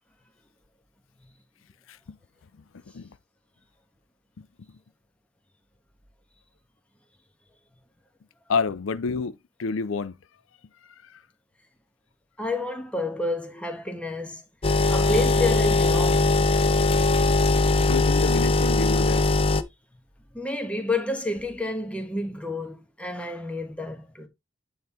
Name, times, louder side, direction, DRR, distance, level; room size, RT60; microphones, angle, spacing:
voice 1, 8.5-10.1 11.1-11.2 17.9-19.2, left 4 dB, 90° left, 0.5 m, -28 dB
voice 2, 12.4-14.4 14.9-16.5 20.3-24.3, left 2 dB, 5° left, 1.5 m, -30 dB
sound 1, 14.6-19.6, left 3 dB, 30° left, 0.6 m, -20 dB
9.4 x 3.7 x 4.4 m
head